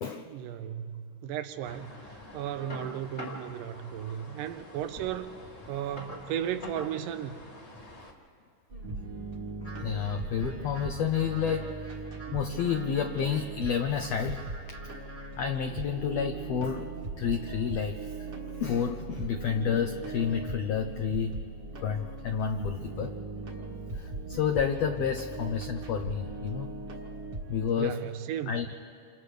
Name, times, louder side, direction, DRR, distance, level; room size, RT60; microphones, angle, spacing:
voice 1, 0.3-5.4 5.7-7.4 27.8-28.6, right 10 dB, 85° right, 10 dB, 2.4 m, -35 dB
sound 1, 1.6-8.1, left 1 dB, 30° left, 1.2 m, -45 dB
sound 2, 8.7-27.7, right 3 dB, 40° right, 1.8 m, -39 dB
sound 3, 9.6-15.4, right 3 dB, 5° left, 1.2 m, -50 dB
voice 2, 9.8-11.9 12.3-14.8 15.4-18.3 18.6-21.4 21.8-23.2 23.9-26.7 27.5-28.1 28.5-28.8, left 7 dB, 80° left, 5 dB, 1.4 m, -30 dB
28.5 x 27.5 x 3.4 m, 2.5 s
omnidirectional pair, 3.8 m